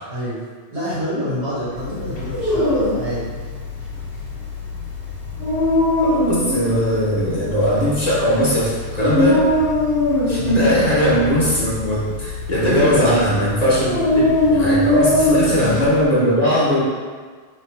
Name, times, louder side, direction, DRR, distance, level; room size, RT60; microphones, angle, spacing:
voice 1, 0.1-0.4 0.7-3.3 10.4-10.6 12.6-13.2, equal, 70° right, -9 dB, 1.7 m, -26 dB
sound 1, 1.8-16.1, left 6 dB, 85° left, 0.9 m, -33 dB
Dog, 2.1-15.8, left 1 dB, 60° left, 1.1 m, -21 dB
voice 2, 6.0-9.4 10.3-14.2 14.5-16.8, equal, 40° left, -7 dB, 0.9 m, -19 dB
3.2 x 2.8 x 4.4 m, 1.5 s
omnidirectional pair, 1.1 m